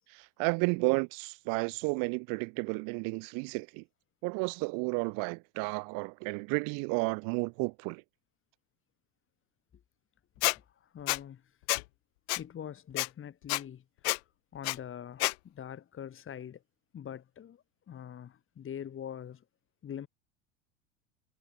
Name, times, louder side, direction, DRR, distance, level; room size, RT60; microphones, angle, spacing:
voice 1, 0.1-3.8 4.2-8.0, right 34 dB, 55° right, 2.8 m, -32 dB
Squeak, 10.4-10.6 11.1-11.2 11.7-11.8 12.3-12.4 13.0-13.1 13.5-13.6 14.0-14.2 14.6-14.8 15.2-15.3, left 27 dB, 55° left, 0.5 m, -28 dB
voice 2, 10.9-11.4 12.4-13.8 14.5-16.6 16.9-19.4 19.8-20.1, left 9 dB, 30° left, 4.7 m, -43 dB
hypercardioid pair, 80°, 39 cm